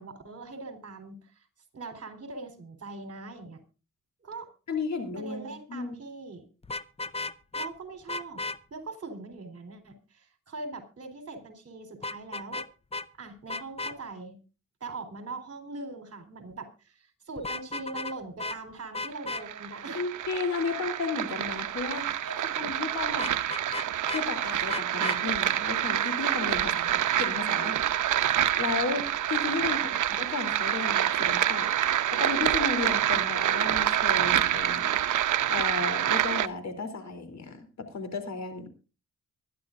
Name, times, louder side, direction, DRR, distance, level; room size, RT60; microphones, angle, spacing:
voice 1, 0.0-1.5 1.7-3.6 4.2-4.5 5.2-6.5 7.5-8.4 8.7-12.6 13.2-14.4 14.8-20.1 22.2-22.4 29.6-30.0, right 3 dB, 50° right, 7 dB, 3.8 m, -41 dB
voice 2, 4.7-5.9 19.9-22.1 22.6-23.4 24.1-27.8 28.6-29.8 30.2-31.7 32.1-34.9 35.4-38.7, left 4 dB, 65° left, 8 dB, 3.2 m, -34 dB
Vehicle horn car horn honking, 6.6-7.7 8.1-8.6 12.0-12.7 12.9-13.1 13.5-13.9 17.4-18.1 18.4-18.6 18.9-19.4 23.2-24.2 24.7-25.2, left 3 dB, 20° left, 0.6 m, -34 dB
sound 1, 19.1-36.5, right 11 dB, 85° right, 0.8 m, -27 dB
24.0 x 11.0 x 2.6 m, 0.33 s
cardioid pair, 95°, 30 cm